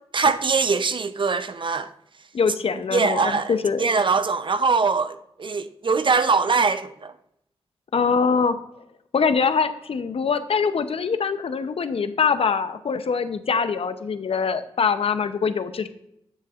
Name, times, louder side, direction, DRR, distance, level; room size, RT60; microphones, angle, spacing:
voice 1, 0.1-1.9 2.9-7.1, right 4 dB, 50° right, 0.6 m, -22 dB
voice 2, 2.3-3.9 7.9-8.6 9.1-15.9, left 5 dB, 60° left, 0.7 m, -23 dB
9.7 x 7.4 x 2.5 m
cardioid pair, 45°, 11 cm